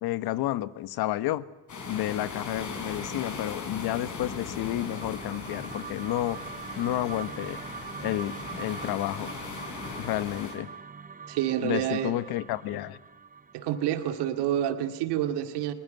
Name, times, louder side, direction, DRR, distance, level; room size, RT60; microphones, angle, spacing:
voice 1, 0.0-1.5 1.9-6.4 6.8-7.6 8.0-9.3 10.0-10.7 11.6-13.0, left 14 dB, 60° left, 15 dB, 1.3 m, -31 dB
sound 1, 1.7-10.6, left 4 dB, 45° left, 6.3 m, -39 dB
sound 2, 4.4-14.7, right 5 dB, 20° right, 0.9 m, -43 dB
voice 2, 11.3-12.1 13.5-15.7, right 11 dB, 70° right, 7 dB, 2.4 m, -28 dB
21.5 x 21.0 x 9.6 m, 1.0 s
supercardioid pair, 100°, 42 cm